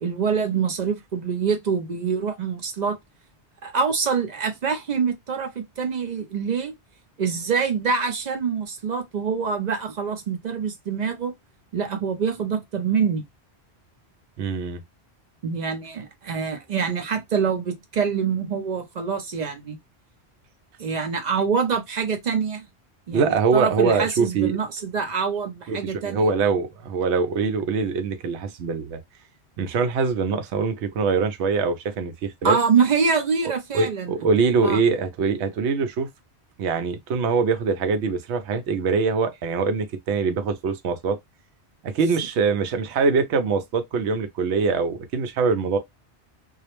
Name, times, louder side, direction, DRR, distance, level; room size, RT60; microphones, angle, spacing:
voice 1, 0.0-3.0 3.6-6.8 7.2-11.3 11.7-13.2 15.4-19.8 20.8-22.6 23.1-26.3 32.4-34.1 34.6-34.8, right 6 dB, 55° right, 0.5 m, -25 dB
voice 2, 14.4-14.8 23.1-24.5 25.7-29.0 29.6-32.6 33.7-36.1 36.6-41.2 41.8-45.8, right 5 dB, 80° right, 0.9 m, -23 dB
2.4 x 2.0 x 2.9 m
omnidirectional pair, 1.1 m